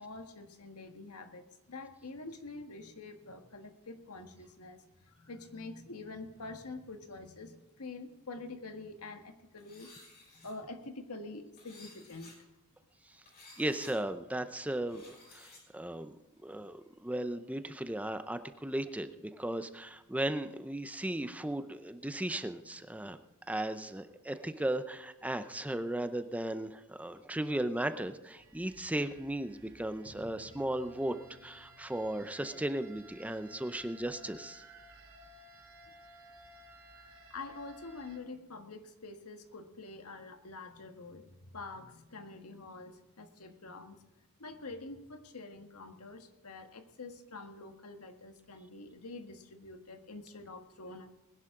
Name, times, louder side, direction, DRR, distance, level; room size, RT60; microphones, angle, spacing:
voice 1, 0.0-9.9 10.3-12.3 16.6-16.7 37.3-44.0 44.4-51.1, left 3 dB, 80° left, 6 dB, 1.5 m, -46 dB
sound 1, 9.6-10.5 11.6-12.4 13.3-13.9 14.8-15.6, left 3 dB, 45° left, 5.6 m, -55 dB
voice 2, 13.6-16.2 16.4-23.2 23.5-34.6, right 1 dB, 5° right, 10 dB, 0.6 m, -36 dB
sound 2, 28.4-38.2, equal, 65° right, 2.9 m, -56 dB
20.5 x 11.0 x 3.7 m, 1.1 s
head